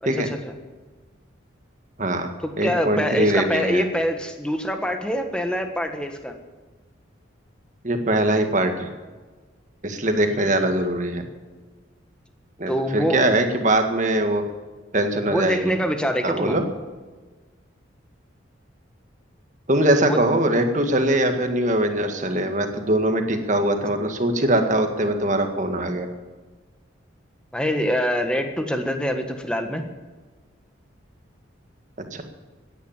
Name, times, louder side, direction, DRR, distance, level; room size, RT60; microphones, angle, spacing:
voice 1, 0.0-0.5 2.4-6.3 10.3-10.7 12.7-13.3 15.3-16.6 20.0-20.3 27.5-29.8, equal, 5° left, 5 dB, 1.4 m, -25 dB
voice 2, 2.0-2.3 2.6-3.8 7.8-8.9 9.8-11.2 12.6-14.4 14.9-15.6 16.2-16.6 19.7-26.1 32.1-32.2, right 1 dB, 40° right, 5 dB, 1.8 m, -22 dB
16.5 x 10.0 x 7.3 m, 1.3 s
head